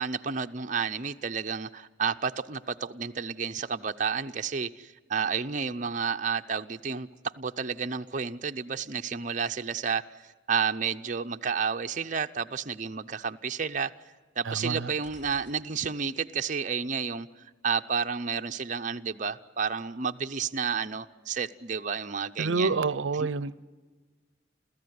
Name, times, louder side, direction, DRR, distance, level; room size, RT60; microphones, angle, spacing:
voice 1, 0.0-10.0 10.5-13.9 14.4-17.3 17.6-22.7 23.2-23.3, right 6 dB, 40° right, 6 dB, 0.7 m, -31 dB
voice 2, 14.5-14.9 22.4-23.7, right 4 dB, 85° right, 19 dB, 0.6 m, -28 dB
sound 1, 15.0-16.3, equal, 70° left, 2.8 m, -54 dB
29.5 x 14.5 x 9.4 m, 1.3 s
head